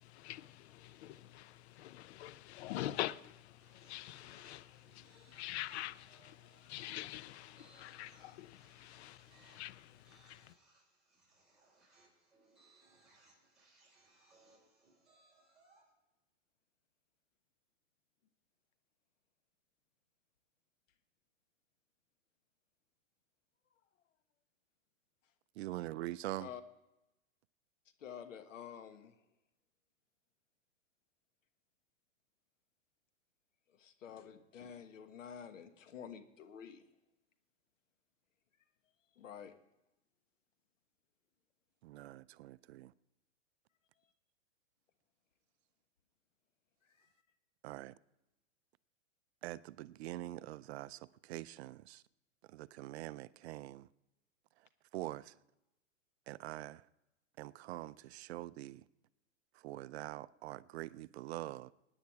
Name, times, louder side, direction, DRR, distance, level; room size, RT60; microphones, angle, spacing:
voice 1, 0.0-10.4, left 14 dB, 60° left, 0.6 m, -45 dB
sound 1, 3.6-15.9, right 3 dB, ahead, 5.7 m, -68 dB
voice 2, 25.6-26.5 41.8-42.9 47.6-47.9 49.4-52.0 52.5-53.9 54.9-55.3 56.3-56.9 57.4-58.8 59.5-61.7, right 16 dB, 60° right, 0.5 m, -44 dB
voice 3, 28.0-29.1 33.7-36.9 39.1-39.5 46.9-47.1, left 8 dB, 85° left, 1.5 m, -49 dB
17.5 x 9.8 x 4.7 m
hypercardioid pair, 130°, 37 cm